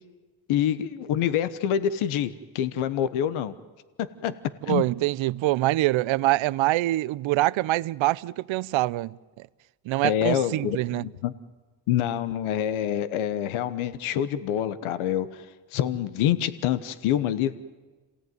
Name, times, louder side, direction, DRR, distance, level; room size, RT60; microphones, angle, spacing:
voice 1, 0.5-3.5 4.0-4.3 4.7-4.8 10.0-11.3 11.9-15.4 15.7-17.6, left 10 dB, 85° left, 1.1 m, -26 dB
voice 2, 4.7-9.5 9.9-11.1, right 17 dB, 75° right, 0.7 m, -25 dB
27.5 x 17.0 x 9.4 m
supercardioid pair, 70°, 48 cm